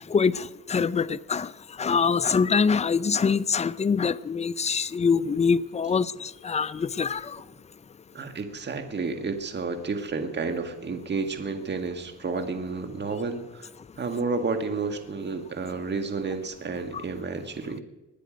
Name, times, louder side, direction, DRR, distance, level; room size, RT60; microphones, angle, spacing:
voice 1, 0.1-1.5 1.8-7.4, left 5 dB, 20° left, 0.5 m, -24 dB
voice 2, 8.1-13.7 14.0-17.8, right 4 dB, 35° right, 1.7 m, -31 dB
21.0 x 9.4 x 5.1 m
cardioid pair, 90°, 30 cm